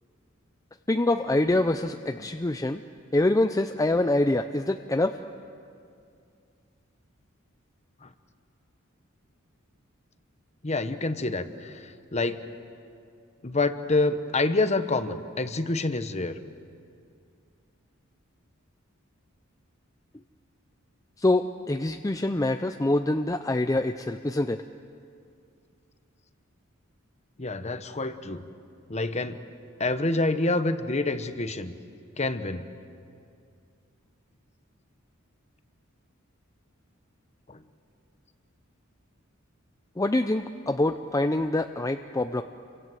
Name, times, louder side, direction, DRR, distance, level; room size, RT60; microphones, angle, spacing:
voice 1, 0.9-2.8 3.1-5.2 21.2-24.6 40.0-42.4, left 2 dB, 15° left, 7 dB, 0.6 m, -25 dB
voice 2, 10.6-11.7 12.1-12.4 13.4-16.4 27.4-28.4 28.9-29.4 29.8-31.7 32.2-32.7 37.5-37.6, left 2 dB, 35° left, 10 dB, 1.1 m, -27 dB
29.0 x 24.5 x 7.9 m, 2.4 s
head